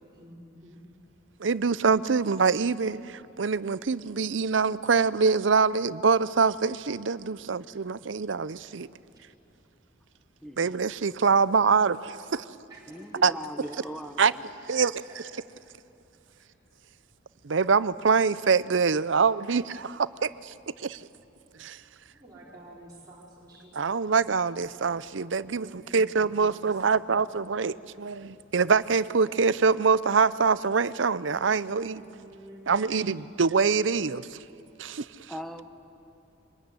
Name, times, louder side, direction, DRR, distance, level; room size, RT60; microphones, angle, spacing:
voice 1, 0.1-0.8 7.5-7.6 12.7-13.3 14.0-14.1 14.9-15.5 16.3-16.5 22.1-24.2 25.3-27.1 31.8-33.2, right 1 dB, 20° right, 4.6 m, -50 dB
voice 2, 1.4-8.9 10.6-12.4 13.2-13.3 14.2-14.3 14.7-15.0 17.4-20.5 20.8-21.0 21.6-21.8 23.8-32.0 32.7-34.3 34.8-35.1, right 5 dB, 70° right, 0.6 m, -24 dB
voice 3, 12.9-14.4 35.3-35.7, equal, ahead, 1.5 m, -40 dB
25.0 x 20.5 x 9.7 m
head